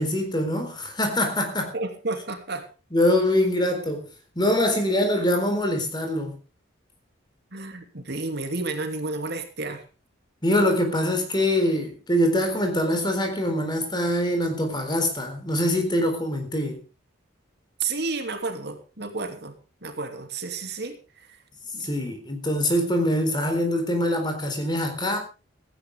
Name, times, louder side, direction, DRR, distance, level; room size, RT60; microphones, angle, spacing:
voice 1, 0.0-1.7 2.9-4.1 4.4-6.4 10.4-16.8 21.8-25.2, left 1 dB, 20° left, 4.0 m, -24 dB
voice 2, 1.7-2.7 7.5-9.8 17.8-19.5 19.8-21.4 21.7-21.9, right 3 dB, 55° right, 2.7 m, -31 dB
17.0 x 15.0 x 3.6 m
head